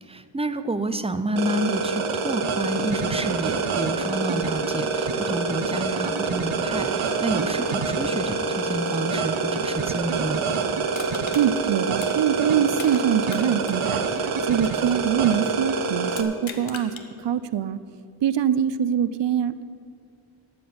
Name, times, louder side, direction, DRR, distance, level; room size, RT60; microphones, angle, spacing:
voice 1, 0.0-10.5, right 1 dB, 15° right, 10 dB, 0.5 m, -29 dB
sound 1, 1.4-16.2, right 4 dB, 90° right, 1.0 m, -26 dB
Crushing, 10.9-13.0 13.3-15.5 16.1-17.1 17.5-17.6, left 6 dB, 70° left, 1.2 m, -40 dB
voice 2, 11.3-16.9 17.2-17.8 18.2-19.6, right 9 dB, 60° right, 15 dB, 0.6 m, -24 dB
13.0 x 6.1 x 8.6 m, 2.4 s
wide cardioid pair, 100°, 48 cm